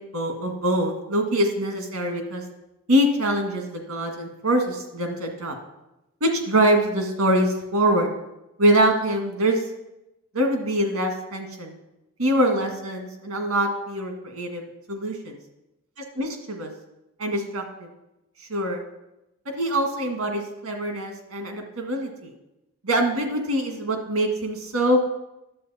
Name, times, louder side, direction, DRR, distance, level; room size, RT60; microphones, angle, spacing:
voice 1, 0.1-2.4 2.9-5.6 6.2-8.1 8.6-9.6 10.3-11.7 12.2-15.4 16.2-16.7 17.2-17.9 18.5-18.8 19.6-22.3 22.8-25.1, right 1 dB, 90° right, 3 dB, 1.8 m, -24 dB
11.0 x 7.6 x 4.2 m, 0.94 s
head